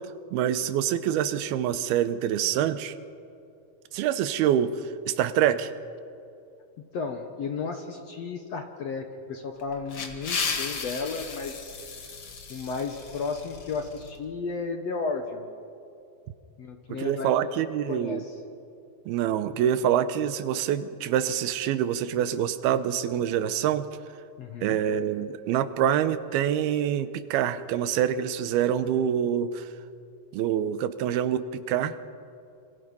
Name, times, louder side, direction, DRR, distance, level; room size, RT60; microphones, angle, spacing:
voice 1, 0.3-2.9 3.9-5.7 17.0-18.2 19.1-23.9 24.6-29.7 30.3-32.0, right 10 dB, 85° right, 12 dB, 2.8 m, -26 dB
voice 2, 6.9-11.7 12.5-15.5 16.6-17.4 17.9-18.4 24.4-24.8, left 4 dB, 60° left, 5 dB, 1.8 m, -33 dB
sound 1, 9.6-14.1, left 5 dB, 45° left, 2.2 m, -35 dB
27.0 x 26.0 x 5.5 m, 2.5 s
omnidirectional pair, 4.3 m